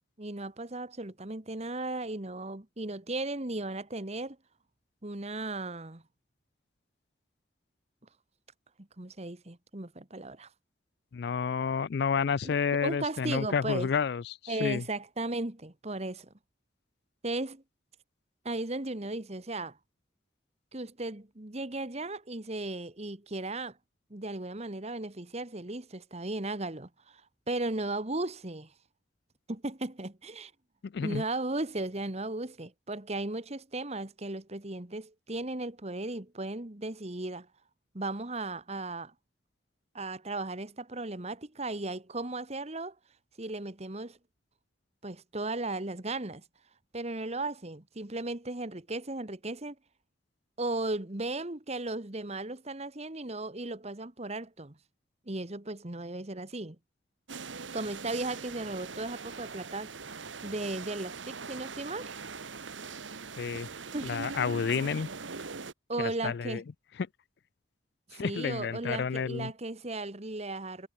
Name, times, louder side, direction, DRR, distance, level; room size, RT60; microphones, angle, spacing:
voice 1, 0.2-4.4 5.0-6.0 9.0-10.5 12.4-12.6 12.8-13.9 14.5-16.3 17.2-17.6 18.4-19.8 20.7-23.8 24.1-27.2 27.5-28.7 29.5-30.5 31.0-37.5 37.9-39.1 39.9-42.9 43.4-44.2 45.0-46.4 46.9-49.7 50.6-54.8 55.3-56.8 57.7-60.0 60.4-62.1 63.9-64.1 65.9-66.6 68.1-70.9, right 2 dB, 35° right, 1.6 m, -36 dB
voice 2, 11.1-14.8 30.8-31.2 63.4-63.7 64.0-65.1 66.0-66.6 68.1-69.5, left 6 dB, 60° left, 0.4 m, -30 dB
sound 1, 57.3-65.7, right 4 dB, 80° right, 1.5 m, -41 dB
head